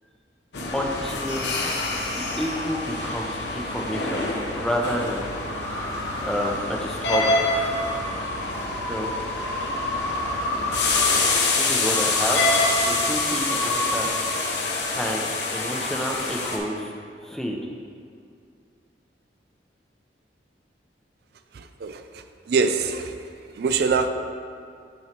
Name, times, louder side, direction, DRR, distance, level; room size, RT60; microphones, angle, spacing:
sound 1, 0.5-16.6, left 3 dB, 75° left, 0.8 m, -26 dB
voice 1, 0.7-1.5 2.0-5.2 6.2-7.4 7.6-7.8 8.9-9.2 11.5-12.4 12.9-14.1 14.5-16.9 17.2-17.6, equal, 5° left, -1 dB, 0.5 m, -29 dB
sound 2, 5.0-14.7, left 1 dB, 20° left, 1.0 m, -31 dB
voice 2, 21.5-23.1 23.6-24.1, right 5 dB, 60° right, 8 dB, 0.4 m, -24 dB
8.7 x 3.1 x 4.4 m, 2.3 s
head